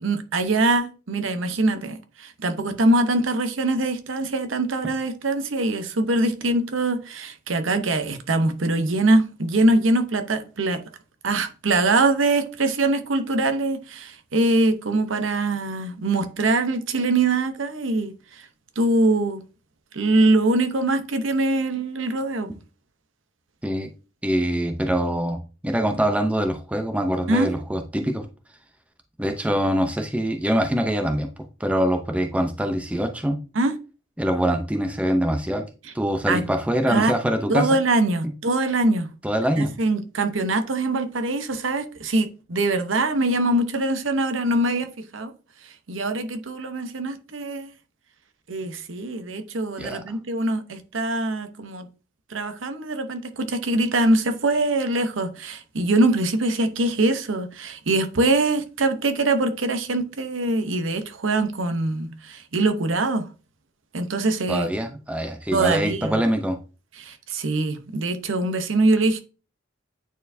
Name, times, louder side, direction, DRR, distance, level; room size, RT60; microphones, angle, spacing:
voice 1, 0.0-10.8 11.2-18.4 18.8-19.4 19.9-22.5 27.3-27.5 33.5-33.7 36.3-36.4 36.9-37.1 37.5-39.1 39.6-45.3 45.9-47.7 48.5-51.9 52.3-63.3 63.9-64.7 65.5-66.2 67.0-69.2, right 2 dB, 85° right, 0.8 m, -23 dB
voice 2, 24.2-28.3 29.2-31.3 31.6-33.4 34.2-35.6 35.9-37.7 39.2-39.7 49.8-50.1 64.5-66.6, equal, 5° right, 0.6 m, -24 dB
9.2 x 4.4 x 2.7 m
head